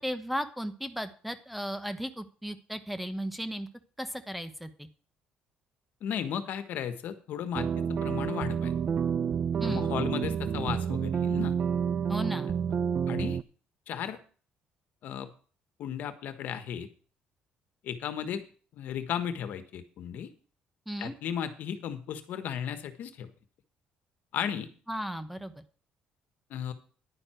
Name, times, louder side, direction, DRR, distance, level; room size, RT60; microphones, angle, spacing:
voice 1, 0.0-3.7 4.0-4.9 9.6-9.9 12.1-12.5 20.9-21.1 24.9-25.6, equal, ahead, 10 dB, 1.0 m, -35 dB
voice 2, 6.0-8.7 9.6-11.5 13.1-13.4 13.9-14.2 15.0-15.3 15.8-16.9 17.8-18.4 18.7-20.3 21.0-23.3 24.3-24.7 26.5-26.7, left 9 dB, 65° left, 10 dB, 1.5 m, -35 dB
sound 1, 7.5-13.4, right 7 dB, 40° right, 0.4 m, -29 dB
11.0 x 9.8 x 4.5 m, 0.39 s
cardioid pair, 135°, 3 cm